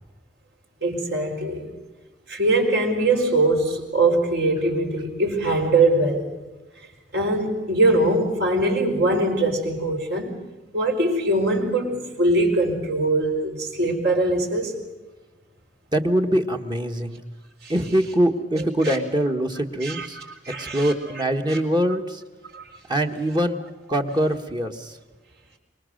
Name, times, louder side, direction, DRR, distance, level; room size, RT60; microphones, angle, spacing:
voice 1, 0.8-1.7 2.3-6.3 6.8-6.9 7.1-10.4 10.7-14.7 17.6-17.7 18.5-19.0 19.8-21.2 21.5-21.6 22.5-22.7, right 2 dB, 65° right, 4.3 m, -22 dB
voice 2, 15.9-17.2 17.7-20.2 20.6-22.2 22.9-23.6 23.9-25.0, right 1 dB, 25° right, 1.4 m, -23 dB
25.0 x 23.0 x 6.5 m
head